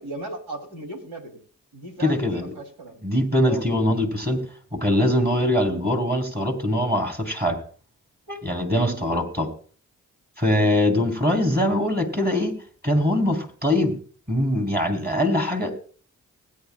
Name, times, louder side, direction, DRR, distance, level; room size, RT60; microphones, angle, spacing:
voice 1, 0.0-1.4 1.7-3.0 3.4-3.6 8.7-9.0 10.6-10.8, right 2 dB, 90° right, 2 dB, 3.1 m, -37 dB
voice 2, 2.0-2.5 3.0-4.4 4.7-7.6 8.3-9.5 10.4-12.6 12.8-14.0 14.3-15.7, left 1 dB, 25° right, 5 dB, 3.6 m, -22 dB
20.0 x 9.7 x 2.3 m, 0.41 s
supercardioid pair, 45°, 36 cm